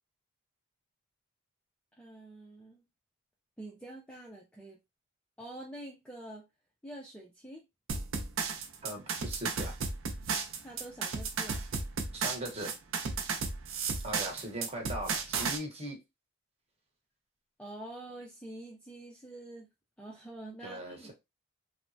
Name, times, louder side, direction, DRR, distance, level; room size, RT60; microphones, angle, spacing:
voice 1, 2.0-2.8 3.6-4.8 5.4-6.5 6.8-7.7 10.6-11.7 17.6-19.7 20.0-21.1, right 1 dB, 5° left, 0.3 m, -46 dB
sound 1, 7.9-15.6, right 5 dB, 60° right, 0.5 m, -34 dB
voice 2, 8.8-9.8 12.1-12.7 14.0-16.0 20.6-21.1, right 1 dB, 25° right, 0.9 m, -39 dB
3.2 x 2.0 x 2.5 m
head